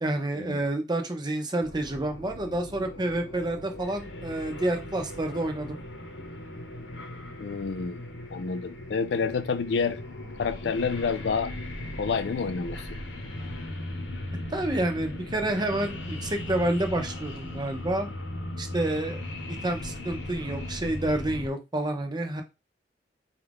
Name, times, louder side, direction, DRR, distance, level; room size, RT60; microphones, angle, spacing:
voice 1, 0.0-5.8 14.5-18.1 18.6-19.2 19.6-22.4, right 1 dB, 25° right, 0.6 m, -29 dB
sound 1, 1.6-21.5, left 1 dB, 90° left, 0.9 m, -38 dB
voice 2, 7.4-10.0 10.4-11.5 12.0-12.9, left 5 dB, 65° left, 0.4 m, -29 dB
4.5 x 2.4 x 3.4 m
head